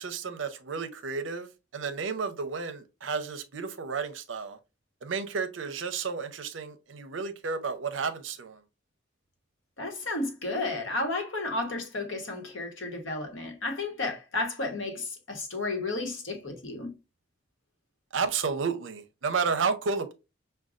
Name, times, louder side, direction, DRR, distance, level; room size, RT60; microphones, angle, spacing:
voice 1, 0.0-4.6 5.0-8.6 18.1-20.1, right 5 dB, 70° right, 0.6 m, -32 dB
voice 2, 9.8-16.9, left 2 dB, 75° left, 1.1 m, -32 dB
6.2 x 2.2 x 2.4 m
head